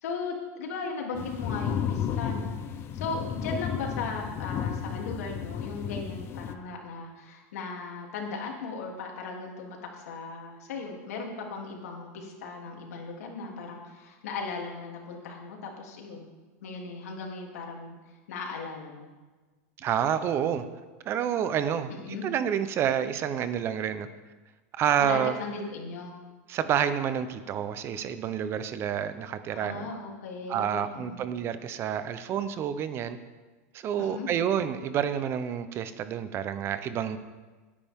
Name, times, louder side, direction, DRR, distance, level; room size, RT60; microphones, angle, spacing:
voice 1, 0.0-2.6 2.9-16.3 16.6-18.0 18.3-19.1 21.9-22.2 25.0-26.2 29.5-31.2 34.0-34.3, left 4 dB, 85° left, 0 dB, 3.0 m, -37 dB
sound 1, 1.1-6.6, left 8 dB, 30° left, 0.7 m, -33 dB
voice 2, 19.8-20.6 21.1-21.9 22.2-24.1 24.8-25.3 26.5-29.9 30.5-33.2 33.7-37.2, right 9 dB, 30° right, 12 dB, 0.8 m, -28 dB
17.5 x 9.9 x 3.7 m, 1.3 s
supercardioid pair, 145°, 8 cm